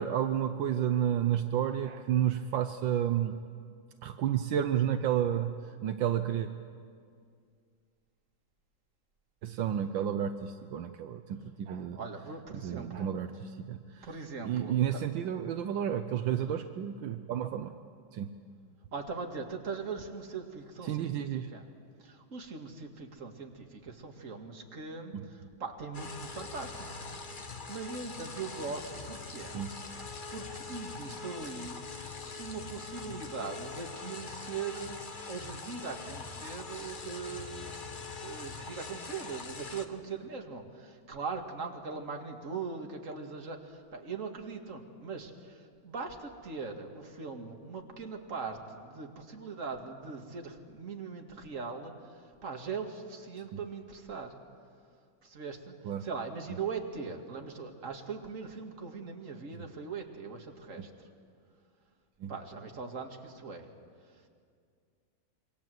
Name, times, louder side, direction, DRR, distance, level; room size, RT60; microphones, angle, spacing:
voice 1, 0.0-3.3 4.0-6.5 9.4-12.0 12.5-14.1 14.4-17.8 18.1-18.3 20.8-21.5 25.1-25.2 29.5-29.8 53.5-53.6 55.8-56.1 60.8-60.9 62.2-62.3, right 10 dB, 75° right, 8 dB, 1.5 m, -31 dB
voice 2, 11.9-13.1 14.0-15.0 18.9-21.2 21.5-21.6 22.0-27.1 27.7-29.6 30.3-31.9 32.4-37.8 38.2-51.9 52.4-54.4 55.2-55.7 56.0-60.9 62.3-63.7, right 5 dB, 40° right, 3 dB, 2.4 m, -40 dB
sound 1, 25.9-39.9, left 4 dB, 30° left, 1.2 m, -43 dB
26.5 x 24.0 x 7.8 m, 2.2 s
omnidirectional pair, 2.1 m